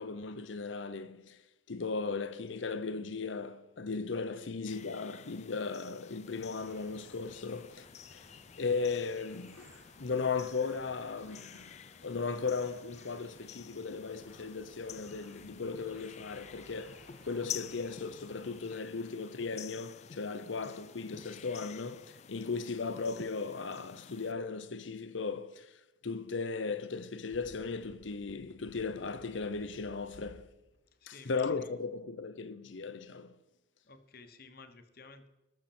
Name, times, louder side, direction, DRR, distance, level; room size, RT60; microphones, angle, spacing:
voice 1, 0.0-1.4 1.7-7.9 8.1-8.3 8.6-11.8 12.0-30.5 31.1-33.4, left 4 dB, 80° left, 0.7 m, -37 dB
sound 1, 4.7-24.3, left 9 dB, 35° left, 0.4 m, -50 dB
sound 2, 6.3-18.6, equal, 20° right, 4.8 m, -60 dB
sound 3, 27.0-30.4 30.7-30.8, right 2 dB, 80° right, 1.8 m, -56 dB
voice 2, 31.0-31.7 33.8-35.3, left 3 dB, 55° left, 1.1 m, -53 dB
19.5 x 6.7 x 4.3 m
head